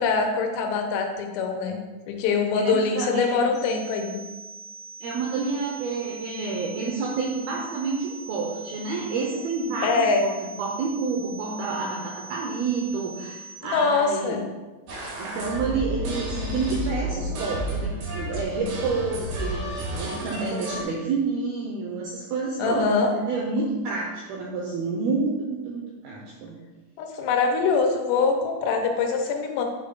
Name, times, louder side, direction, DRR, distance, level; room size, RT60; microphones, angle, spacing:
voice 1, 0.0-1.8 2.1-4.2 9.8-10.2 13.7-14.4 22.6-23.1 27.0-29.6, left 4 dB, 85° left, 3 dB, 2.9 m, -23 dB
voice 2, 2.5-3.5 5.0-14.4 15.2-26.6, right 4 dB, 90° right, -1 dB, 2.1 m, -29 dB
sound 1, 3.5-13.5, right 3 dB, 45° right, 1.7 m, -43 dB
sound 2, 14.9-20.8, right 1 dB, 65° right, 2.7 m, -31 dB
9.1 x 5.1 x 2.3 m, 1.2 s
omnidirectional pair, 5.1 m